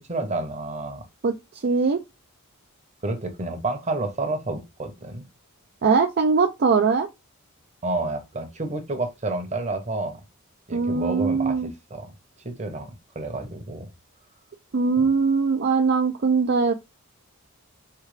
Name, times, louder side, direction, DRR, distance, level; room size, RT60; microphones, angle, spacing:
voice 1, 0.1-1.0 3.0-5.3 7.8-10.2 10.7-12.1 12.4-13.9 15.0-15.1, right 2 dB, 30° right, 1.0 m, -30 dB
voice 2, 1.2-2.0 5.8-7.1 10.7-11.7 14.7-16.7, right 4 dB, 50° right, 0.5 m, -21 dB
4.5 x 3.3 x 3.2 m
head